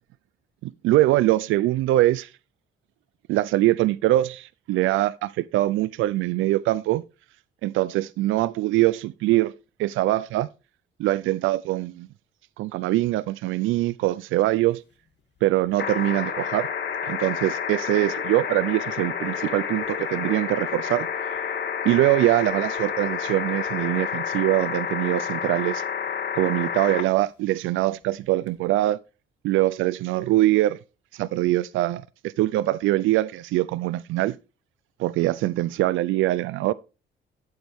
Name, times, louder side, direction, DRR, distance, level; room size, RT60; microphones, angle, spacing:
voice 1, 0.6-2.3 3.3-7.0 7.6-9.5 9.8-10.5 11.0-12.1 12.6-14.8 15.4-16.7 17.0-21.4 21.8-25.8 26.3-29.0 29.4-30.8 31.1-34.3 35.0-36.7, right 16 dB, 85° right, 0.4 m, -23 dB
sound 1, 15.8-27.0 28.5-28.6, left 7 dB, 60° left, 2.2 m, -29 dB
12.5 x 7.8 x 3.5 m
cardioid pair, 90°, 20 cm